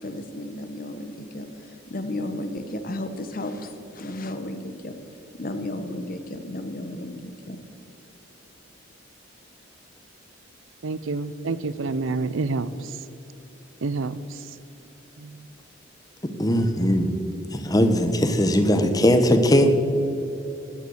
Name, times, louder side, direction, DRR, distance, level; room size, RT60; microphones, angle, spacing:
voice 1, 0.0-4.9 5.4-7.6, left 1 dB, 45° left, 1.0 m, -33 dB
voice 2, 10.8-13.1 13.8-14.6 15.2-15.5, right 3 dB, 80° right, 0.6 m, -29 dB
voice 3, 16.2-17.2 17.5-19.7, equal, 20° left, 1.0 m, -20 dB
13.0 x 9.7 x 6.5 m
head